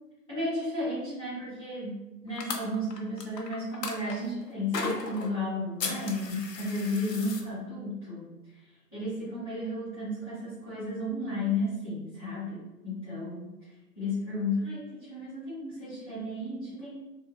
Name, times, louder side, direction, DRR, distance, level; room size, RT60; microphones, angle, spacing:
voice 1, 0.3-8.2 8.9-13.5 13.9-17.0, left 1 dB, 20° left, -15 dB, 0.7 m, -33 dB
sound 1, 2.4-4.1 4.7-5.3 5.8-7.4, left 4 dB, 85° left, 0.6 m, -35 dB
2.6 x 2.4 x 2.3 m, 1.0 s
figure-of-eight pair, 160°, 48 cm